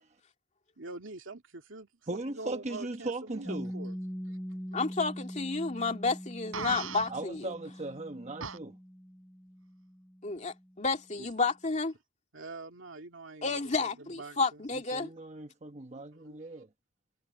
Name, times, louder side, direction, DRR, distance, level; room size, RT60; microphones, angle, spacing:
voice 1, 0.8-3.9 4.3-4.4 11.2-11.3 12.3-14.7 15.9-16.6, right 2 dB, 65° right, 2.8 m, -45 dB
voice 2, 2.1-3.8 7.1-8.8 14.9-16.7, right 2 dB, 35° right, 1.1 m, -38 dB
Piano, 3.4-10.7, equal, 5° left, 2.9 m, -42 dB
voice 3, 4.7-7.5 10.2-11.9 13.4-15.1, left 4 dB, 35° left, 2.4 m, -31 dB
Fart, 6.5-7.1 8.4-8.6, right 5 dB, 85° right, 6.2 m, -37 dB
head